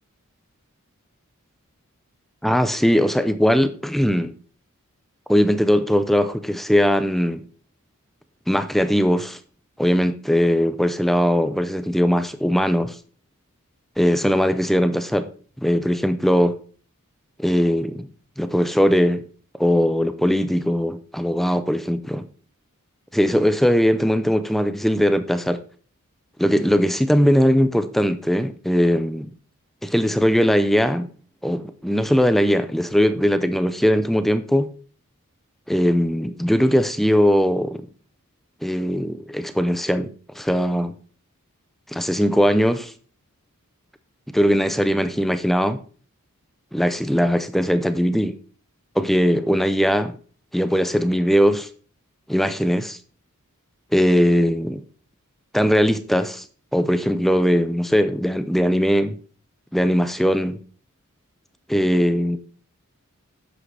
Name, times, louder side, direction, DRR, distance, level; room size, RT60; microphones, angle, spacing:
voice 1, 2.4-4.3 5.3-7.4 8.5-9.4 9.8-13.0 14.0-15.3 15.6-16.5 17.4-18.1 18.4-19.2 19.6-22.2 23.1-25.6 26.4-29.3 29.8-31.1 31.4-34.7 35.7-37.9 38.6-40.9 41.9-42.9 44.3-45.8 46.7-48.4 49.0-50.2 50.5-51.7 52.3-53.0 53.9-54.8 55.5-56.4 56.7-59.1 59.7-60.6 61.7-62.4, equal, ahead, 0.4 m, -20 dB
10.0 x 7.5 x 3.3 m
head